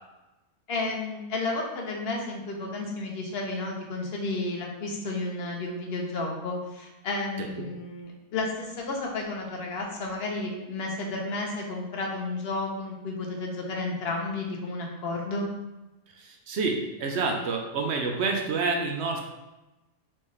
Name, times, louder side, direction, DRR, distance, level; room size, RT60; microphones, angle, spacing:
voice 1, 0.7-15.5, left 2 dB, 50° left, 0 dB, 0.9 m, -32 dB
voice 2, 16.1-19.2, right 4 dB, 60° right, 2 dB, 0.8 m, -28 dB
4.3 x 3.6 x 3.2 m, 1.0 s
omnidirectional pair, 1.5 m